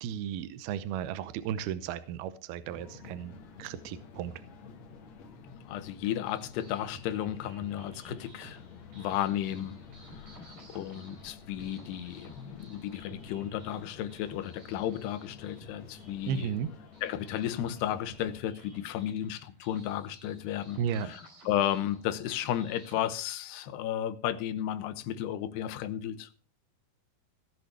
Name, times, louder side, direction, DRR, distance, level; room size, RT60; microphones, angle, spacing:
voice 1, 0.0-4.3 16.3-16.7 20.8-21.1, right 8 dB, 75° right, 2.5 m, -34 dB
sound 1, 2.7-18.4, left 5 dB, 55° left, 2.2 m, -50 dB
voice 2, 5.7-8.6 8.9-16.5 17.0-26.3, left 11 dB, 80° left, 3.0 m, -34 dB
sound 2, 5.9-23.1, right 1 dB, 50° right, 6.0 m, -53 dB
17.0 x 6.7 x 6.8 m
omnidirectional pair, 4.8 m